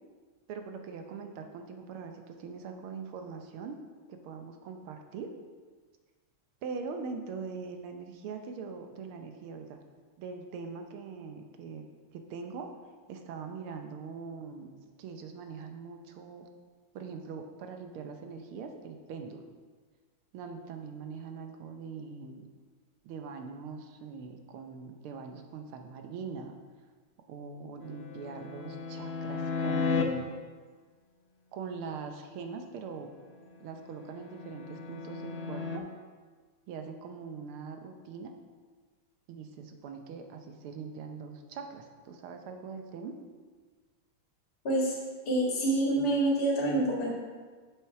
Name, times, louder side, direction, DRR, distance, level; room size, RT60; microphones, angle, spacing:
voice 1, 0.5-3.8 4.1-5.3 6.6-9.8 10.2-11.8 12.1-12.7 13.1-14.7 15.0-16.5 17.0-19.4 20.3-22.5 23.0-26.6 27.3-30.3 31.5-33.1 33.6-35.8 36.7-38.3 39.3-43.2, right 5 dB, 85° right, 5 dB, 1.7 m, -42 dB
sound 1, 27.8-30.0 33.4-35.8, left 4 dB, 70° left, 0.6 m, -34 dB
voice 2, 44.6-45.0 45.3-47.1, right 1 dB, 50° left, -5 dB, 2.4 m, -27 dB
7.5 x 6.8 x 4.7 m, 1.5 s
omnidirectional pair, 2.3 m